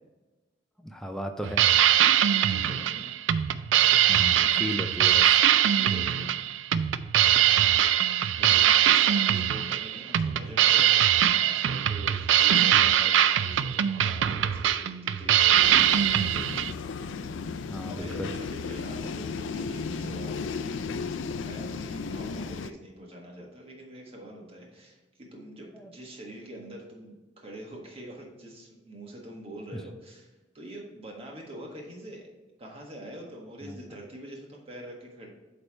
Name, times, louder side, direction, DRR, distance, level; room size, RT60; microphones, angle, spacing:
voice 1, 0.8-1.7 4.1-5.3 15.8-15.9 17.7-18.3 25.7-25.9 29.7-29.8 33.6-33.8, equal, 5° left, 4 dB, 0.4 m, -35 dB
sound 1, 1.4-16.7, right 11 dB, 80° right, 0.3 m, -22 dB
voice 2, 2.2-3.1 5.7-6.4 7.5-7.8 8.3-17.4 17.9-20.7 21.0-32.2 32.6-35.3, right 1 dB, 30° right, -1 dB, 1.5 m, -44 dB
sound 2, 15.5-22.7, left 4 dB, 85° left, 0.4 m, -35 dB
8.1 x 3.4 x 4.4 m, 1.1 s
head